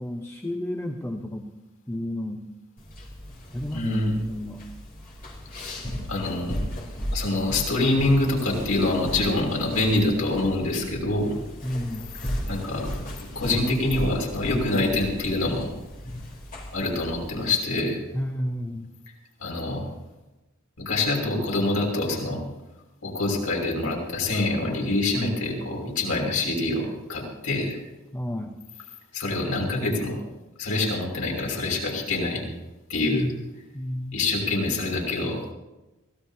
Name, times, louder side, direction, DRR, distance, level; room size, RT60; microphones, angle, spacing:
voice 1, 0.0-1.5 1.9-2.4 3.5-4.6 11.6-12.1 18.1-18.9 28.1-28.5 33.1-33.4 33.7-34.1, left 1 dB, 10° left, 3 dB, 0.9 m, -31 dB
sound 1, 2.8-17.5, equal, 40° left, 3.4 m, -36 dB
voice 2, 3.7-4.2 6.1-6.6 7.1-11.3 12.5-12.9 13.2-15.7 16.7-18.0 19.4-19.9 20.8-22.4 23.0-27.8 29.1-30.2 30.6-32.4 32.9-33.3 34.1-35.4, left 2 dB, 85° left, -2 dB, 6.0 m, -25 dB
24.0 x 17.0 x 2.8 m, 1.0 s
head